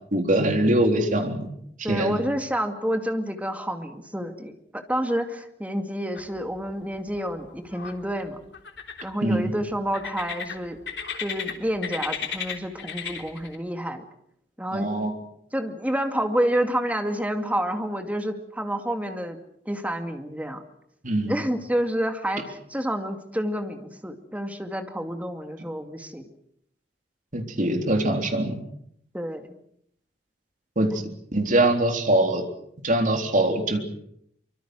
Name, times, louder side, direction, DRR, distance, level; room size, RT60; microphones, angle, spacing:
voice 1, 0.1-1.5 1.9-2.2 9.2-9.5 14.7-15.1 21.0-21.4 27.3-28.6 30.8-30.9 31.3-32.4 32.8-33.8, right 1 dB, 45° right, 4 dB, 3.7 m, -22 dB
voice 2, 1.8-8.4 9.0-10.8 11.2-14.1 14.6-14.9 15.5-19.4 19.7-20.6 21.3-26.3 29.1-29.6 30.9-31.0, equal, 10° right, 6 dB, 2.3 m, -29 dB
sound 1, 6.1-6.7 7.0-7.9 8.5-9.4 9.9-11.5 11.8-13.6, left 7 dB, 75° left, 3.4 m, -34 dB
24.5 x 24.5 x 6.3 m, 0.72 s
head